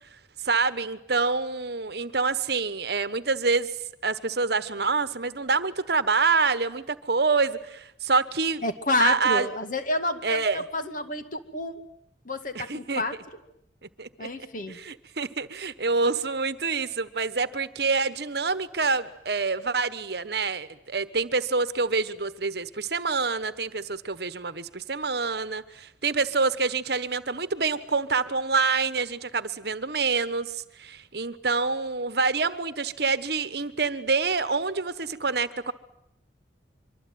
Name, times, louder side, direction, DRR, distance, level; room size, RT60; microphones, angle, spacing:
voice 1, 0.4-3.7 4.0-8.6 9.0-9.5 10.2-10.6 12.5-13.0 14.0-14.3 14.7-35.7, right 4 dB, 55° right, 13 dB, 1.2 m, -26 dB
voice 2, 8.6-11.8 12.2-13.2 14.2-14.8, left 2 dB, 45° left, 8 dB, 2.1 m, -29 dB
25.0 x 24.5 x 9.4 m, 0.78 s
head